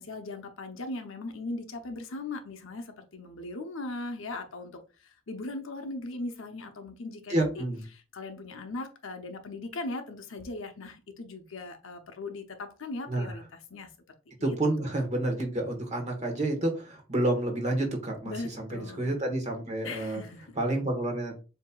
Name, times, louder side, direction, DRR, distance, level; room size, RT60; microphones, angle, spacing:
voice 1, 0.0-7.6 7.9-13.4 13.7-13.9 14.4-14.9 18.2-19.1 19.8-20.6, left 2 dB, 60° left, 6 dB, 0.7 m, -39 dB
voice 2, 7.3-7.8 13.1-13.3 14.4-20.2 20.5-21.4, right 1 dB, 30° right, 3 dB, 1.3 m, -29 dB
7.3 x 2.9 x 2.3 m, 0.33 s
head